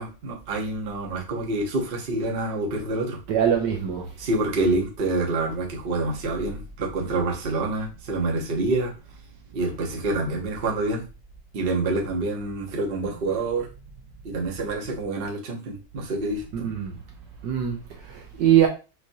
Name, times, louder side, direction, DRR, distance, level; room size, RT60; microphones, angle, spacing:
voice 1, 0.0-3.2 4.2-8.9 9.5-11.0 11.5-13.7 14.2-16.7, right 2 dB, 35° right, 1.0 m, -27 dB
voice 2, 3.3-4.1 16.6-16.9 17.4-18.7, right 10 dB, 70° right, 1.2 m, -22 dB
6.3 x 2.9 x 2.7 m
omnidirectional pair, 2.1 m